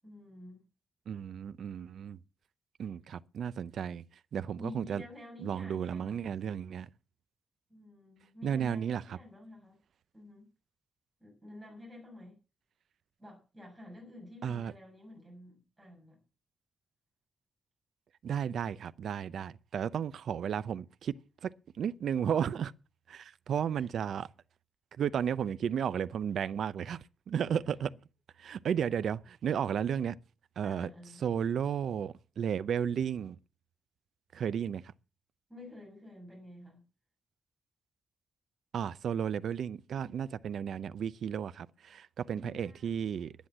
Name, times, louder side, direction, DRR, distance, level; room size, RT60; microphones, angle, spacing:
voice 1, 0.0-0.6 4.6-6.2 7.7-9.8 10.1-10.4 11.2-12.4 13.2-16.2 23.7-23.9 27.6-27.8 30.6-31.2 35.5-36.8 42.3-43.0, left 1 dB, 10° right, 6.6 m, -50 dB
voice 2, 1.1-2.2 2.8-4.0 4.3-5.0 5.4-6.9 8.4-9.2 14.4-14.7 18.2-21.1 21.4-22.7 23.1-24.3 25.0-27.9 28.4-30.1 30.6-30.9 31.2-33.4 34.3-34.8 38.7-43.3, right 8 dB, 75° right, 0.6 m, -33 dB
11.5 x 10.5 x 7.4 m
wide cardioid pair, 155°, 0 cm